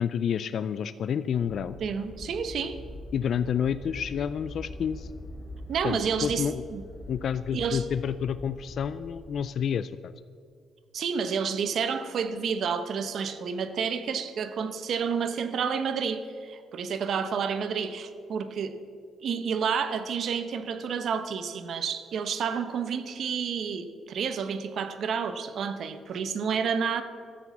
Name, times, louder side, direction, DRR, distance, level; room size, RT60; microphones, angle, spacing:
voice 1, 0.0-1.8 3.1-5.1 5.8-6.6 7.1-10.1, left 8 dB, 60° left, 14 dB, 0.4 m, -29 dB
sound 1, 1.3-9.3, left 1 dB, 20° left, 3.0 m, -43 dB
voice 2, 1.8-2.8 5.7-6.8 7.5-7.8 10.9-18.7 19.2-27.0, right 6 dB, 65° right, 10 dB, 1.0 m, -30 dB
13.5 x 8.2 x 7.2 m, 2.2 s
cardioid pair, 90°, 0 cm